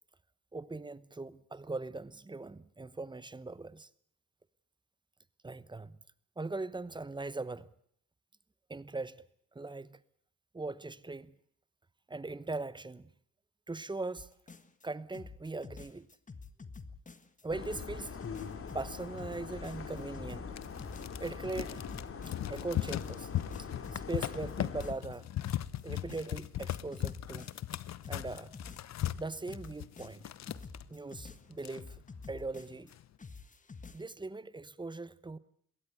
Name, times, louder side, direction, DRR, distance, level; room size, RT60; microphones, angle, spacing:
voice 1, 0.5-3.9 5.4-5.9 6.4-7.7 8.7-9.2 9.5-10.0 10.5-11.3 12.1-13.1 13.7-14.3 14.8-16.1 17.4-18.2 18.7-20.6 21.2-21.8 22.5-23.3 23.6-25.3 25.8-27.5 28.1-28.5 29.2-30.2 30.9-32.0 32.3-32.9 33.9-35.4, right 3 dB, 15° right, 1.0 m, -40 dB
sound 1, 14.2-14.9 15.1-17.4 17.7-22.6 22.9-25.2 25.5-27.8 28.0-32.9 33.2-34.0, left 4 dB, 25° left, 1.5 m, -49 dB
sound 2, 17.5-24.9, left 6 dB, 45° left, 2.7 m, -43 dB
sound 3, 20.6-30.8 31.3-31.4 31.5-32.2 32.7-33.0, left 12 dB, 60° left, 1.0 m, -38 dB
22.0 x 17.0 x 8.0 m
cardioid pair, 90°, 30 cm